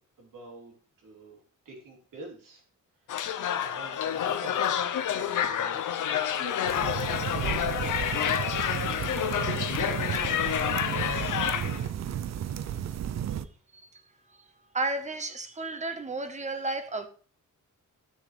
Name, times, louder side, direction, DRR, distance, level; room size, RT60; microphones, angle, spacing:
voice 1, 0.2-0.7 1.0-1.4 1.6-2.6 3.6-4.7 5.2-5.8 6.1-8.0 9.0-10.2, right 2 dB, 90° right, 3.3 m, -46 dB
sound 1, 3.1-11.9, left 9 dB, 75° left, 0.8 m, -29 dB
sound 2, 6.7-13.4, right 10 dB, 60° right, 0.6 m, -33 dB
voice 2, 14.7-17.1, right 2 dB, 20° right, 0.8 m, -32 dB
14.0 x 6.4 x 3.3 m
wide cardioid pair, 165°, 31 cm